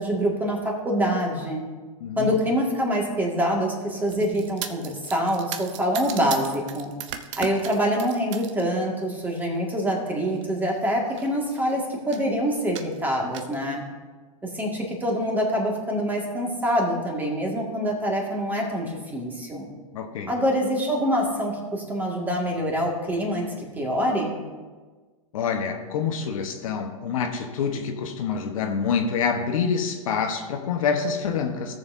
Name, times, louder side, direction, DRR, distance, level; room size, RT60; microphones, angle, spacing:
voice 1, 0.0-1.6 2.2-6.9 7.4-13.8 14.4-19.7 20.3-24.4, equal, 10° right, -1 dB, 2.0 m, -25 dB
voice 2, 2.0-2.3 19.9-20.3 25.3-31.7, left 6 dB, 70° left, 4 dB, 1.2 m, -26 dB
sound 1, 4.1-8.6 9.0-9.5 10.3-10.4 10.7-10.8 11.1-11.7 12.1-12.3 12.8-13.6, right 9 dB, 55° right, 0.8 m, -37 dB
17.0 x 6.9 x 2.7 m, 1.4 s
hypercardioid pair, 125°, 18 cm